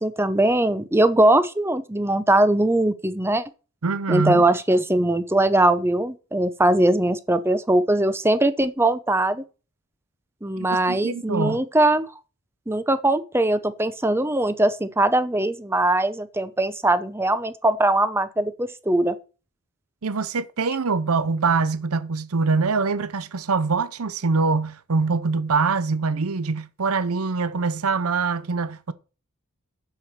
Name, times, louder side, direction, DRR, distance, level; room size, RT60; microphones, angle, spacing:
voice 1, 0.0-3.4 4.1-9.4 10.4-12.1 12.7-19.2, right 1 dB, 10° right, 0.7 m, -21 dB
voice 2, 3.8-4.4 10.6-11.6 20.0-28.9, right 4 dB, 85° right, 0.7 m, -24 dB
7.5 x 7.0 x 7.4 m
head